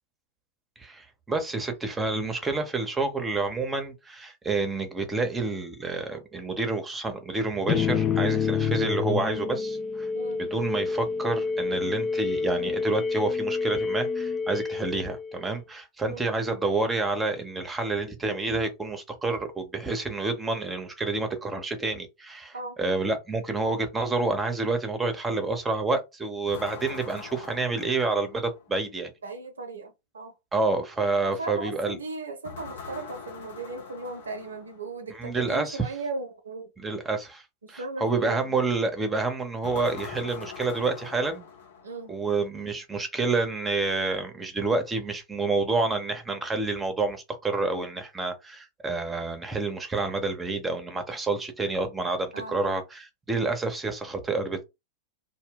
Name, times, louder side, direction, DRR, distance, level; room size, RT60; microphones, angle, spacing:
voice 1, 0.8-10.1 10.4-29.1 30.5-32.0 35.1-35.8 36.8-37.4 37.7-41.5 42.1-54.6, right 3 dB, 15° right, 0.8 m, -28 dB
sound 1, 7.7-15.6, left 5 dB, 30° left, 0.4 m, -28 dB
sound 2, 26.5-28.8 32.4-35.0 39.6-42.2, left 6 dB, 70° left, 0.7 m, -43 dB
voice 2, 29.2-30.3 31.2-36.7 37.6-38.5 41.8-42.2 52.3-52.6, right 3 dB, 80° right, 0.6 m, -37 dB
2.2 x 2.1 x 3.7 m
figure-of-eight pair, 95°, 0 cm